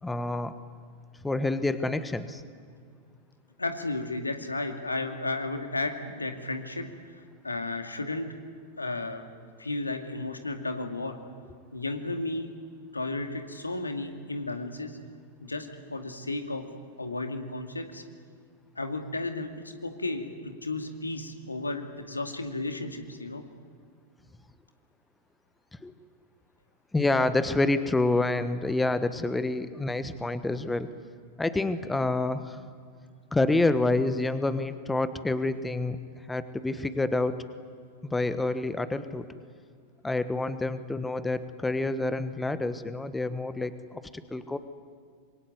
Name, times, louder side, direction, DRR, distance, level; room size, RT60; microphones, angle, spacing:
voice 1, 0.0-0.5 1.2-2.4 25.8-25.9 26.9-30.9 31.4-32.6 33.3-36.0 36.3-37.4 38.0-39.2 40.0-44.6, left 2 dB, 10° left, 12 dB, 1.3 m, -28 dB
voice 2, 3.6-7.1 7.4-8.3 8.8-9.2 9.6-11.2 11.7-12.5 12.9-15.0 15.4-16.6 17.0-18.0 18.8-19.5 19.8-23.4, left 2 dB, 80° left, 6 dB, 2.2 m, -33 dB
26.0 x 22.5 x 9.5 m, 2.1 s
figure-of-eight pair, 90°, 0 cm